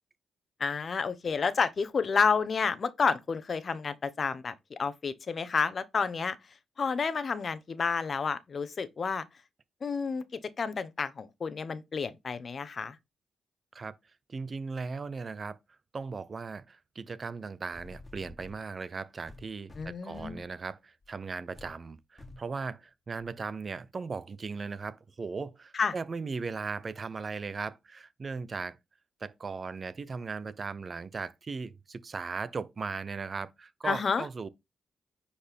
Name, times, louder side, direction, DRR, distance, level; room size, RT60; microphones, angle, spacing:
voice 1, 0.6-6.4 6.8-9.2 9.8-10.2 10.6-12.9 19.8-20.4 25.7-25.9 33.8-34.3, left 5 dB, 50° left, 1.0 m, -30 dB
voice 2, 14.3-15.6 15.9-28.8 29.2-34.5, right 4 dB, 45° right, 0.8 m, -38 dB
sound 1, 17.7-18.6 19.3-20.5 21.0-21.2 21.5-21.8 22.2-22.5 23.2-23.3, left 2 dB, 25° left, 1.8 m, -49 dB
9.9 x 4.4 x 3.6 m
cardioid pair, 70°, 0 cm